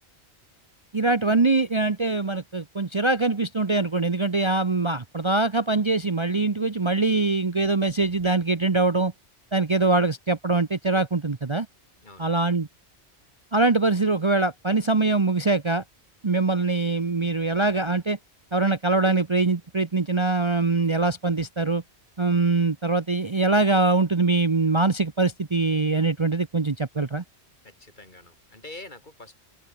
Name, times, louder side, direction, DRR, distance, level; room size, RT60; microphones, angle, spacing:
voice 1, 0.9-9.1 9.5-11.7 12.2-12.7 13.5-15.8 16.2-18.2 18.5-21.8 22.2-27.2, right 3 dB, 30° right, 0.9 m, -23 dB
voice 2, 27.6-29.4, left 2 dB, 45° left, 3.3 m, -45 dB
omnidirectional pair, 1.1 m